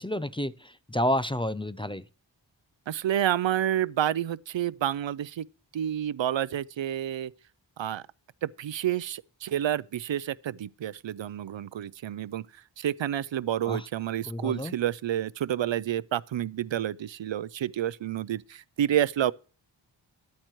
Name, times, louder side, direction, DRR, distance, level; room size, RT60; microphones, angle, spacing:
voice 1, 0.0-2.0 13.7-13.9 14.3-14.7, left 1 dB, 10° left, 0.4 m, -30 dB
voice 2, 2.9-5.5 5.7-7.3 7.8-8.0 8.4-12.4 12.8-19.3, right 11 dB, 80° right, 0.5 m, -29 dB
13.5 x 11.5 x 3.1 m
wide cardioid pair, 60°, 45 cm